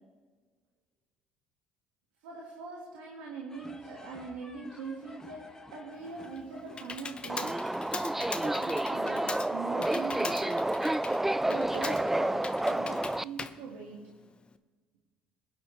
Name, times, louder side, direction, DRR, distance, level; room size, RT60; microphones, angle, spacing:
voice 1, 2.2-7.8 8.4-10.8 11.5-14.2, right 4 dB, 85° right, -2 dB, 1.8 m, -42 dB
sound 1, 3.5-9.1, left 2 dB, 15° left, 1.6 m, -52 dB
Computer keyboard, 6.0-14.5, left 4 dB, 30° left, 0.9 m, -42 dB
Subway metro underground, 7.3-13.2, right 1 dB, 10° right, 0.3 m, -30 dB
21.0 x 9.6 x 3.3 m, 1.4 s
hypercardioid pair, 60°, 3 cm